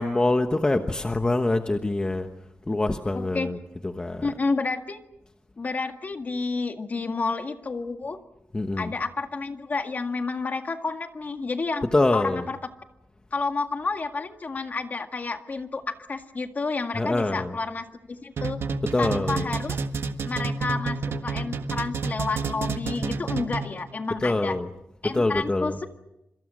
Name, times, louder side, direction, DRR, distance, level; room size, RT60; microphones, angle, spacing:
voice 1, 0.0-2.3 2.7-4.3 8.5-8.9 11.9-12.5 16.9-17.5 18.8-19.5 24.2-24.7 25.0-25.8, left 2 dB, 20° left, 6 dB, 1.2 m, -25 dB
voice 2, 3.1-3.5 4.2-5.0 5.6-8.2 8.8-11.9 12.1-12.6 13.3-18.6 19.0-19.8 20.2-21.0 21.2-24.6 25.0-25.9, left 4 dB, 40° left, 6 dB, 1.9 m, -30 dB
sound 1, 18.4-23.9, right 5 dB, 85° right, 1.5 m, -29 dB
27.0 x 26.0 x 6.5 m, 0.86 s
wide cardioid pair, 140°, 4 cm